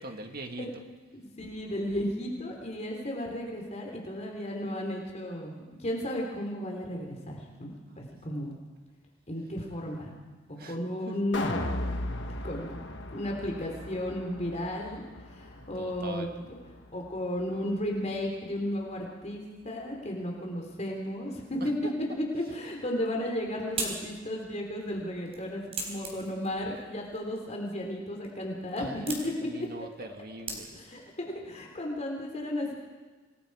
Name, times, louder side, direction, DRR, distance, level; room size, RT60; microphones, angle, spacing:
voice 1, 0.0-1.0 1.4-1.5 8.0-8.1 10.6-10.8 11.1-11.2 11.7-11.8 15.8-16.4 21.6-21.9 28.8-29.1 29.4-31.0, right 2 dB, 50° right, 4 dB, 2.0 m, -42 dB
voice 2, 1.1-8.5 9.3-10.2 10.7-11.6 12.4-12.8 13.1-15.0 15.3-16.3 16.9-21.7 22.2-29.7 30.7-32.7, left 1 dB, 35° left, 0 dB, 3.6 m, -34 dB
sound 1, 11.3-17.6 17.9-18.0, left 1 dB, 60° left, 1.4 m, -37 dB
sound 2, 23.1-31.1, right 3 dB, 30° right, 4.1 m, -42 dB
27.0 x 20.0 x 4.9 m, 1.3 s
head